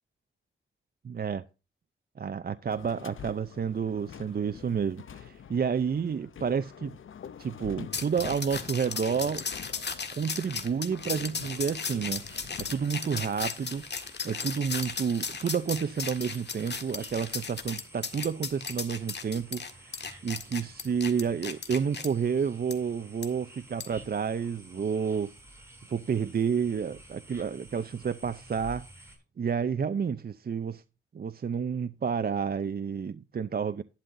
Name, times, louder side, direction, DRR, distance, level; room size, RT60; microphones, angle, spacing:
voice 1, 1.0-1.4 2.2-6.9 7.4-9.4 10.1-25.3 25.9-29.0 29.4-30.8 31.1-33.8, right 6 dB, 45° right, 0.6 m, -30 dB
sound 1, 2.7-13.3, left 8 dB, 75° left, 0.7 m, -46 dB
sound 2, 7.9-22.1 22.7-22.8 23.2-23.3 23.8-24.0, left 5 dB, 55° left, 1.8 m, -36 dB
sound 3, 11.4-29.2, right 1 dB, 15° right, 5.9 m, -52 dB
12.0 x 11.5 x 2.6 m
wide cardioid pair, 95°, 21 cm